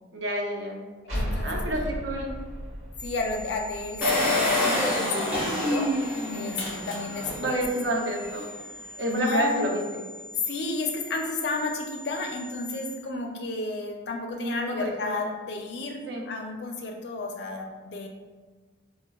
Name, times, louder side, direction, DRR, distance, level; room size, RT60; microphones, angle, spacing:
voice 1, 0.1-0.8 1.4-2.3 7.4-8.5 9.0-10.0 14.4-15.3 16.1-16.2, right 1 dB, 65° right, 0 dB, 0.6 m, -29 dB
voice 2, 1.0-1.9 3.0-5.9 6.3-7.6 9.1-9.6 10.5-18.1, left 3 dB, 55° left, 2 dB, 0.4 m, -32 dB
sound 1, 1.1-4.6, equal, 90° right, 1.1 m, -34 dB
sound 2, 3.0-13.0, left 1 dB, 35° right, 1.0 m, -44 dB
Engine, 4.0-7.5 7.9-8.0 8.2-8.3, left 1 dB, 5° right, 0.7 m, -26 dB
4.3 x 2.1 x 2.3 m, 1.4 s
head